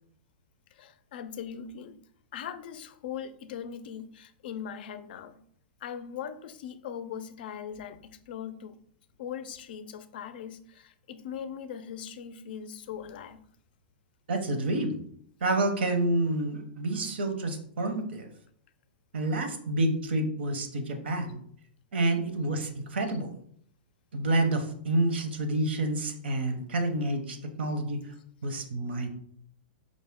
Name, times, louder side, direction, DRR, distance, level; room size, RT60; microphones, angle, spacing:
voice 1, 0.7-2.0 2.3-5.4 5.8-8.8 9.2-13.4, left 8 dB, 65° left, 0.4 m, -40 dB
voice 2, 14.3-15.0 15.4-18.3 19.1-21.4 21.9-23.3 24.1-28.0 28.4-29.1, right 2 dB, 85° right, 0.8 m, -28 dB
5.0 x 2.1 x 3.6 m
hypercardioid pair, 145°, 6 cm